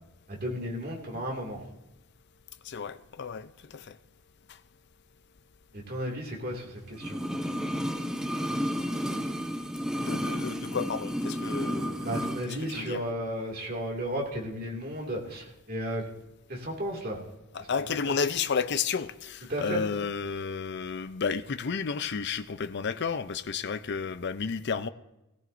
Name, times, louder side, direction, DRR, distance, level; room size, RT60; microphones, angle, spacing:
voice 1, 0.3-1.6 5.7-7.2 12.0-16.0 16.5-17.2 18.1-18.2 19.5-19.8, equal, 45° right, 2.3 m, -34 dB
voice 2, 2.6-4.0 10.0-13.0 17.5-24.9, left 5 dB, 50° left, 0.5 m, -32 dB
sound 1, 7.0-12.5 12.7-12.8, equal, 5° right, 0.6 m, -32 dB
17.5 x 15.5 x 2.6 m
head